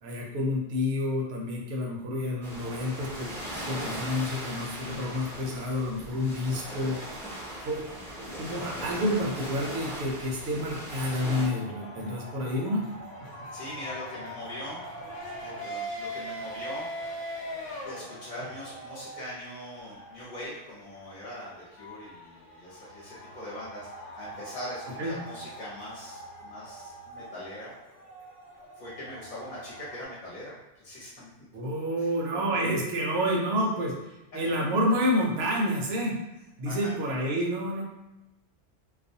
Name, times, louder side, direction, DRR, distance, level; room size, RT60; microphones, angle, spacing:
voice 1, 0.0-7.0 7.6-7.9 8.2-12.8 25.0-25.1 31.5-36.2 36.6-37.8, left 1 dB, 65° right, -1 dB, 0.8 m, -29 dB
sound 1, 2.4-11.5, equal, 5° left, 0.5 m, -39 dB
sound 2, 10.8-30.0, right 1 dB, 85° left, 1.0 m, -42 dB
voice 2, 13.5-14.8 15.4-17.1 17.8-23.9 24.2-27.7 28.8-31.3 36.6-37.0, left 1 dB, 40° left, -8 dB, 0.8 m, -41 dB
2.4 x 2.2 x 2.7 m, 1.0 s
omnidirectional pair, 1.2 m